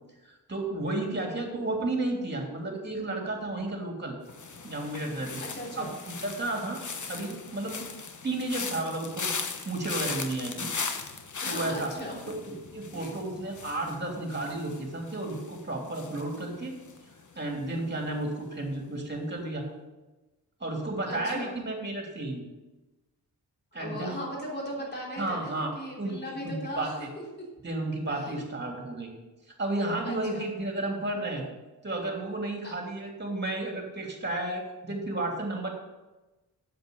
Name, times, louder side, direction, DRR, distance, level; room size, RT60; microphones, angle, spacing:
voice 1, 0.2-4.2 4.6-5.4 5.7-6.8 7.1-7.9 8.2-10.7 11.4-11.9 12.7-16.8 17.3-19.7 20.6-22.4 23.7-24.2 25.2-25.7 26.0-27.1 27.6-29.1 29.6-31.5 31.8-35.7, right 2 dB, 25° right, 1 dB, 3.1 m, -32 dB
voice 2, 1.3-1.7 5.4-5.9 11.4-12.2 12.9-13.1 21.0-21.6 23.7-27.2 28.1-28.4 30.0-30.5 32.6-32.7, equal, 25° left, -3 dB, 3.3 m, -38 dB
sound 1, 4.3-17.3 17.6-18.0, left 5 dB, 45° left, 1.1 m, -38 dB
7.9 x 7.6 x 7.1 m, 1.1 s
cardioid pair, 75°, 41 cm